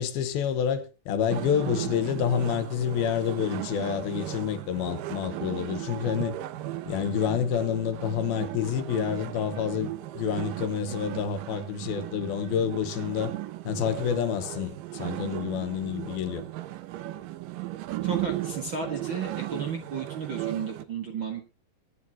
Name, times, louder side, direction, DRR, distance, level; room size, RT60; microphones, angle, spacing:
voice 1, 0.0-6.4 6.9-13.3 13.6-16.4, left 8 dB, 85° left, 3.1 m, -28 dB
sound 1, 1.3-20.9, right 15 dB, 75° right, 2.3 m, -36 dB
voice 2, 18.0-21.4, right 5 dB, 50° right, 1.5 m, -33 dB
23.5 x 10.5 x 2.9 m
omnidirectional pair, 4.3 m